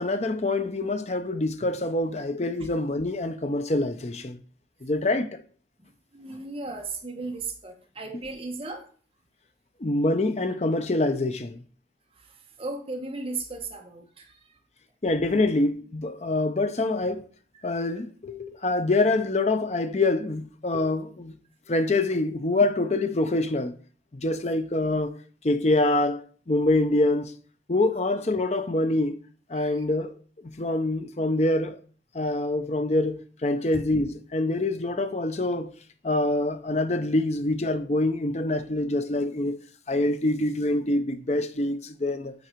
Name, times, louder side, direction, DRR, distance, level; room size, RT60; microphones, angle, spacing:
voice 1, 0.0-4.4 4.8-5.4 9.8-11.6 15.0-17.3 17.6-21.4 21.7-23.7 24.1-25.2 25.4-27.3 27.7-29.2 29.5-30.1 30.4-31.8 32.1-35.7 36.0-39.6 39.9-42.3, left 2 dB, 40° left, 0.6 m, -25 dB
voice 2, 6.1-8.8 12.6-14.4 17.6-18.0 29.6-29.8 33.7-33.8, right 3 dB, 30° right, 1.0 m, -36 dB
9.4 x 3.9 x 4.5 m
head